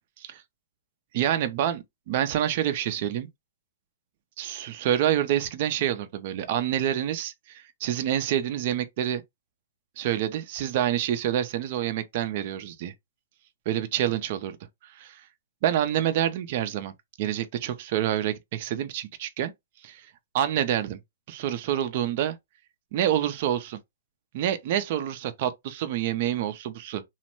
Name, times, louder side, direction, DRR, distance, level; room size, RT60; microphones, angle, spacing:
voice 1, 1.1-3.3 4.4-9.2 10.0-12.9 13.7-14.6 14.8-15.2 15.6-19.5 19.8-20.1 20.3-21.0 21.3-22.4 22.9-23.8 24.3-27.0, right 11 dB, 40° right, 0.4 m, -27 dB
3.0 x 2.0 x 3.0 m
hypercardioid pair, 160°, 0 cm